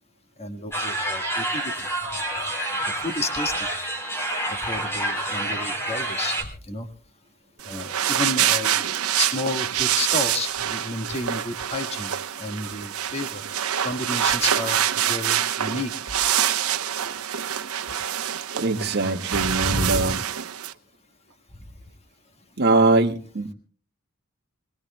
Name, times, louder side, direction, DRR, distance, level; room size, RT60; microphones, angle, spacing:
voice 1, 0.4-1.9 3.0-3.7 4.5-6.4 6.7-6.9 7.6-8.8 9.2-12.1 12.4-13.4 13.8-14.8 15.1-15.9 19.4-19.9, left 2 dB, 30° left, 6 dB, 1.6 m, -31 dB
sound 1, 0.7-6.4, right 1 dB, 10° left, 4.0 m, -28 dB
sound 2, 7.6-20.7, right 10 dB, 80° right, 0.9 m, -26 dB
voice 2, 18.5-20.2 22.6-23.5, right 2 dB, 50° right, 3 dB, 1.6 m, -22 dB
25.5 x 19.5 x 2.2 m, 0.40 s
head